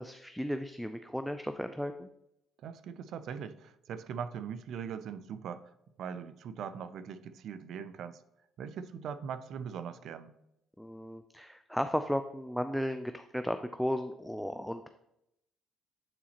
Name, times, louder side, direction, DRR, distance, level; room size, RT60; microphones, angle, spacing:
voice 1, 0.0-2.1 10.8-14.9, equal, ahead, 8 dB, 0.3 m, -35 dB
voice 2, 2.6-5.6 6.0-8.2 8.6-10.3, right 7 dB, 65° right, 13 dB, 0.4 m, -41 dB
8.7 x 4.1 x 2.9 m, 0.83 s
cardioid pair, 100°, 0 cm